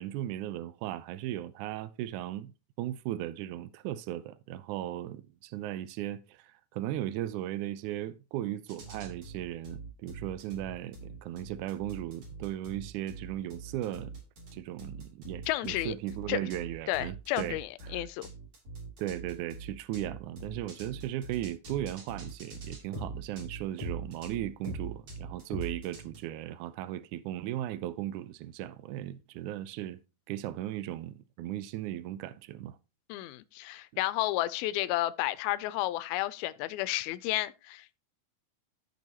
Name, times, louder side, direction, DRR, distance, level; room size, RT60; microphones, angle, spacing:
voice 1, 0.0-2.5 2.8-14.1 14.5-18.0 19.0-30.0 30.3-32.8, right 13 dB, 90° right, 1.7 m, -37 dB
sound 1, 8.7-26.2, right 3 dB, 45° right, 4.0 m, -43 dB
voice 2, 15.5-16.0 16.3-16.4 16.9-18.3 33.1-38.0, left 16 dB, 90° left, 2.5 m, -32 dB
15.0 x 5.4 x 3.0 m
omnidirectional pair, 4.3 m